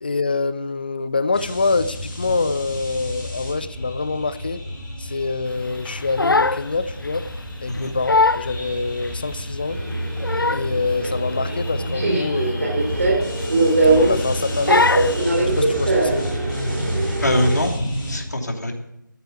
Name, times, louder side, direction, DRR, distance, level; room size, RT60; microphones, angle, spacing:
voice 1, 0.0-4.6 5.0-7.2 7.6-9.8 10.5-13.1 13.9-16.2, left 3 dB, 25° left, 15 dB, 0.5 m, -25 dB
sound 1, 1.3-18.2, left 1 dB, 5° left, 1.9 m, -32 dB
Crying sobbing, 5.8-6.7 7.0-7.3 7.7-7.8 8.1-8.5 9.0-9.1 9.9-10.8 11.0-11.3 11.6-11.8 12.1-12.3 13.1-13.7 14.0-14.3 14.7-15.2, left 3 dB, 80° left, 0.4 m, -21 dB
Subway metro underground, 9.7-17.6, right 2 dB, 45° right, 3.0 m, -22 dB
voice 2, 17.2-18.7, left 1 dB, 55° left, 3 dB, 2.8 m, -23 dB
14.0 x 7.9 x 8.1 m, 0.81 s
figure-of-eight pair, 160°, 11 cm